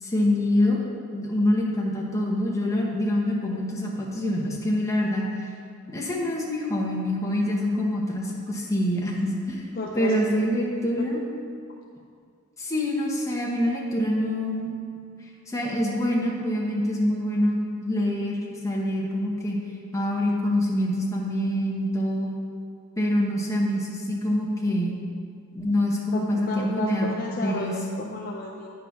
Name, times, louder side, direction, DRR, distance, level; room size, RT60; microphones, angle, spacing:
voice 1, 0.0-0.8 1.1-5.2 5.9-9.7 10.0-11.2 12.6-14.7 15.5-18.4 18.6-19.6 19.9-22.3 23.0-25.0 25.5-27.1 27.4-27.7, left 1 dB, 15° left, -3 dB, 1.0 m, -25 dB
voice 2, 9.7-10.1 11.0-11.1 26.1-28.7, left 2 dB, 40° left, -1 dB, 0.5 m, -32 dB
8.9 x 3.9 x 5.8 m, 2.3 s
head